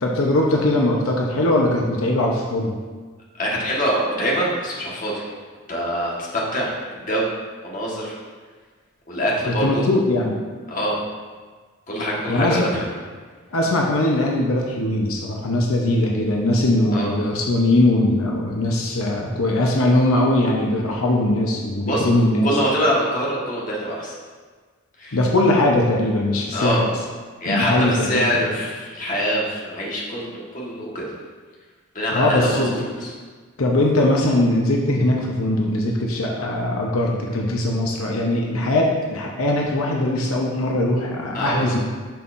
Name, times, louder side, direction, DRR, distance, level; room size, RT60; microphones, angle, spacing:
voice 1, 0.0-2.7 9.5-10.4 12.3-12.7 13.5-22.5 25.1-26.9 27.4-28.5 32.1-33.0 33.6-41.8, left 1 dB, 85° left, -1 dB, 0.9 m, -20 dB
voice 2, 3.3-5.2 5.7-7.3 7.6-8.1 9.1-9.9 10.7-11.0 11.9-13.0 16.9-17.2 21.9-22.1 22.4-24.1 25.0-25.2 26.5-26.8 27.4-31.0 31.9-32.6 33.0-33.1 41.3-41.7, equal, 40° left, -4 dB, 1.5 m, -24 dB
10.5 x 5.5 x 2.6 m, 1.5 s
head